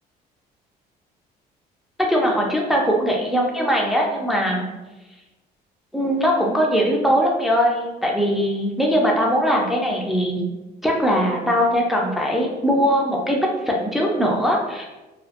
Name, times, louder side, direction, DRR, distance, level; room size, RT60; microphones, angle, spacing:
voice 1, 2.1-4.6 5.9-10.4 10.8-14.8, equal, ahead, -1 dB, 0.3 m, -20 dB
2.2 x 2.0 x 2.8 m, 1.1 s
cardioid pair, 110°, 17 cm